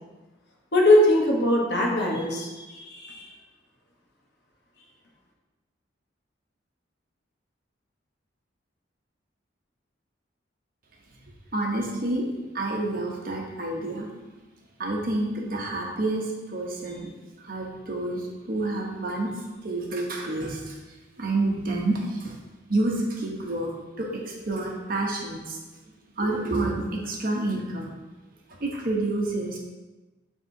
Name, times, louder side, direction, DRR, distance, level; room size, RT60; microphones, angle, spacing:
voice 1, 0.7-3.3, left 1 dB, 55° left, -2 dB, 1.1 m, -21 dB
voice 2, 11.5-12.3 12.5-14.1 14.8-17.1 17.4-20.8 21.2-22.4 22.7-25.6 26.2-27.9 28.6-29.6, right 2 dB, 45° right, -1 dB, 1.0 m, -29 dB
9.5 x 3.6 x 2.7 m, 1.2 s
head